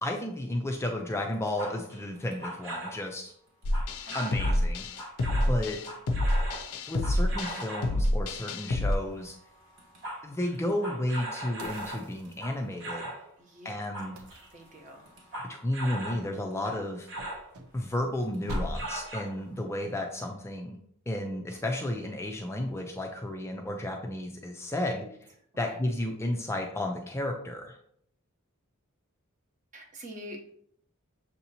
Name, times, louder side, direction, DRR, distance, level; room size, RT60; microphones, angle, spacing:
voice 1, 0.0-3.3 4.1-4.8 5.5-5.8 6.9-9.4 10.2-13.1 13.6-14.2 15.5-17.1 17.7-20.8 21.1-25.0 25.6-27.8, left 1 dB, 10° left, 2 dB, 0.3 m, -32 dB
sound 1, 1.3-3.0 3.7-4.6 5.0-8.0 9.1-9.3 9.6-13.3 13.7-16.3 16.6-17.5 18.3-19.6, right 1 dB, 60° right, 1.2 m, -39 dB
sound 2, 3.6-8.9, left 1 dB, 75° left, 0.4 m, -28 dB
voice 2, 4.1-4.4 13.4-13.8 14.5-15.1 24.7-25.1 25.5-25.8 29.7-30.5, equal, 35° right, 2 dB, 0.8 m, -45 dB
sound 3, 11.6-12.9 14.2-15.3 17.1-18.2 18.5-19.2 21.5-21.9, equal, 80° right, 0.6 m, -40 dB
6.6 x 2.8 x 2.7 m, 0.67 s
head